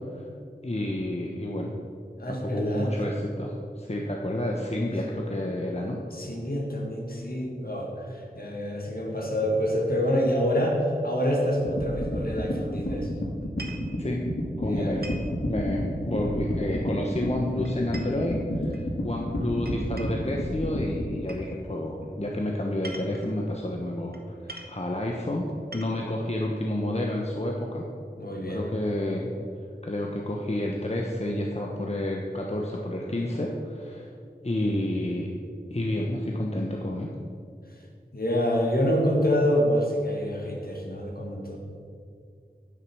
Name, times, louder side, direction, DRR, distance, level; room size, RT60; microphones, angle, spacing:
voice 1, 0.6-1.7 2.3-6.0 14.0-14.2 14.6-15.2 15.4-24.2 24.4-27.8 28.5-29.3 29.8-34.1 34.4-35.3 35.7-37.1, left 1 dB, 40° left, -1 dB, 1.1 m, -30 dB
voice 2, 2.2-2.9 6.1-13.1 14.6-15.0 28.2-28.7 38.1-41.6, equal, 60° left, -1 dB, 2.1 m, -27 dB
sound 1, 11.6-21.1, left 1 dB, 85° left, 1.8 m, -30 dB
sound 2, 13.4-13.9 15.0-15.3 16.7-17.1 17.6-18.8 19.6-20.3 21.3-21.5 22.6-23.3 24.1-24.2 24.5-24.8 25.5-26.1, right 2 dB, 65° right, 1.1 m, -43 dB
9.4 x 7.7 x 6.2 m, 2.3 s
wide cardioid pair, 45°, 17 cm